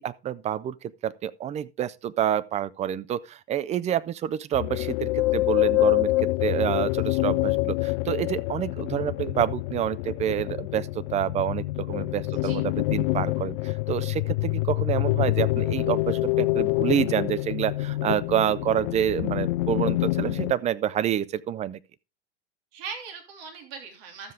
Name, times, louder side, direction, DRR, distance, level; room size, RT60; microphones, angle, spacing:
voice 1, 0.0-21.8, right 10 dB, 20° right, 0.5 m, -28 dB
sound 1, 4.5-20.5, left 19 dB, 50° left, 0.4 m, -26 dB
voice 2, 12.3-12.7 22.7-24.3, right 5 dB, 55° right, 2.8 m, -40 dB
13.0 x 7.5 x 3.5 m
hypercardioid pair, 95°, 35 cm